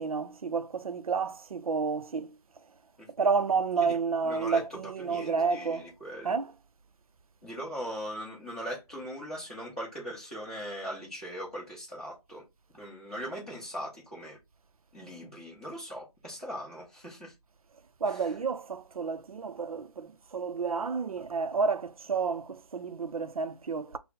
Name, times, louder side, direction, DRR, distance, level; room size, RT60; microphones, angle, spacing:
voice 1, 0.0-2.4 3.2-5.9 6.2-6.5 18.0-24.0, right 5 dB, 65° right, 0.5 m, -30 dB
voice 2, 4.2-6.3 7.4-12.5 12.7-14.4 14.9-17.3, equal, 5° left, 0.6 m, -40 dB
3.9 x 2.0 x 4.1 m
hypercardioid pair, 180°, 20 cm